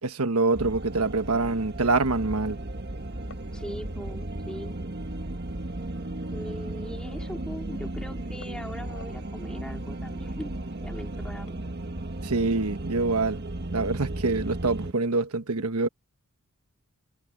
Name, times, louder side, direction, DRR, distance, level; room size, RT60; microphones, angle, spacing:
voice 1, 0.0-2.6 12.2-13.4 13.7-15.9, right 3 dB, 85° right, 1.3 m, -25 dB
sound 1, 0.5-14.9, right 1 dB, 50° right, 1.5 m, -35 dB
sound 2, 1.6-2.0 2.6-2.7 3.0-3.6 3.9-5.0 5.3-5.4 5.6-6.4 6.8-7.6 8.0-9.3 9.8-11.6, left 4 dB, 60° left, 6.0 m, -54 dB
voice 2, 3.5-4.8 6.3-11.7, equal, 5° left, 3.7 m, -41 dB
head